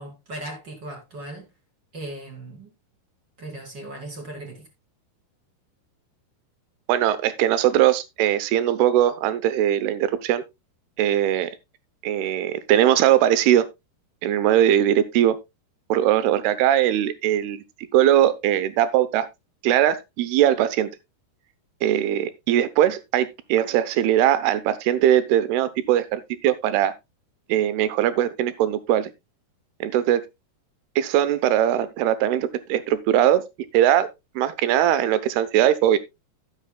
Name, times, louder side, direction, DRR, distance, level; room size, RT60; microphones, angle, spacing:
voice 1, 0.0-1.5 1.9-2.7 3.4-4.7, right 1 dB, 30° right, 2.8 m, -37 dB
voice 2, 6.9-10.4 11.0-11.5 12.0-13.7 14.2-15.4 15.9-17.6 17.9-19.3 19.6-20.9 21.8-26.9 27.5-29.1 29.8-30.2 31.0-33.5 33.7-34.1 34.4-36.0, right 11 dB, 80° right, 2.9 m, -20 dB
11.0 x 11.0 x 2.3 m
omnidirectional pair, 4.6 m